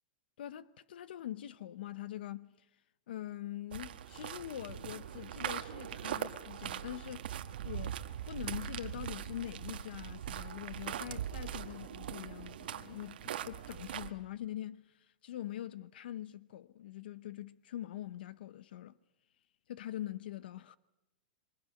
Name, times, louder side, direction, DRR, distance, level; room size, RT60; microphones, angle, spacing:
voice 1, 0.4-2.7 3.1-7.3 7.6-8.0 8.3-18.9 19.7-20.8, left 12 dB, 80° left, 0.8 m, -44 dB
sound 1, 3.7-14.1, right 10 dB, 80° right, 1.3 m, -41 dB
26.5 x 23.5 x 6.4 m
supercardioid pair, 150°, 5 cm